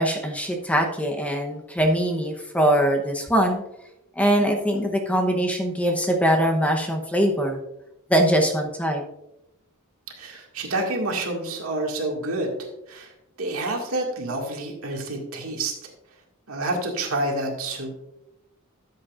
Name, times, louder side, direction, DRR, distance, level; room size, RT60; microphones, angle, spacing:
voice 1, 0.0-3.6 4.2-7.6 8.1-9.0, equal, 5° left, 2 dB, 0.8 m, -22 dB
voice 2, 10.2-12.5 12.9-13.1 13.4-15.7 16.5-18.1, right 2 dB, 70° right, 0 dB, 2.1 m, -28 dB
13.0 x 7.6 x 2.5 m, 0.86 s
head